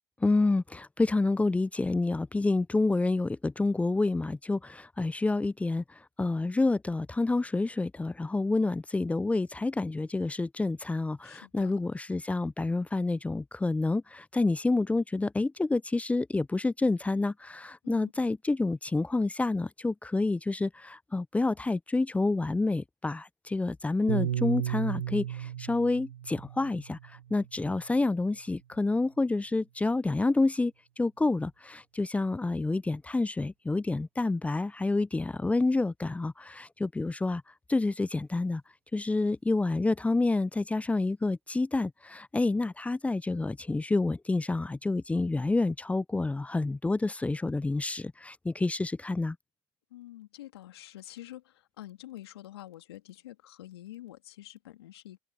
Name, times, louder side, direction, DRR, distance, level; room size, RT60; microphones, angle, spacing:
voice 1, 0.2-27.0 27.3-37.4 37.7-38.6 38.9-49.4, left 3 dB, 10° left, 0.4 m, -28 dB
voice 2, 11.2-11.7 17.8-18.1 49.9-55.2, left 14 dB, 80° left, 2.8 m, -47 dB
Piano, 24.1-28.5, right 11 dB, 90° right, 0.7 m, -35 dB
hypercardioid pair, 75°, 13 cm